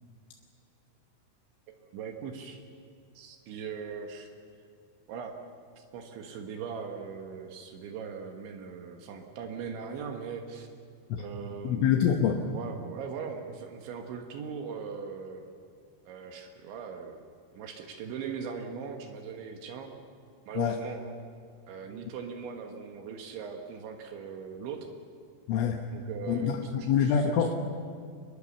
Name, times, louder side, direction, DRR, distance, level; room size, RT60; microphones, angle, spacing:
voice 1, 1.7-2.6 3.2-4.3 5.1-5.4 5.8-10.7 11.2-12.2 12.5-15.5 16.1-17.2 17.5-19.9 20.5-21.0 21.7-24.9 25.9-27.1, right 6 dB, 70° right, 4 dB, 3.5 m, -40 dB
voice 2, 11.6-12.4 20.5-20.8 25.5-25.8 26.3-27.6, left 8 dB, 75° left, 3 dB, 3.4 m, -26 dB
24.0 x 21.0 x 7.2 m, 2.4 s
omnidirectional pair, 5.9 m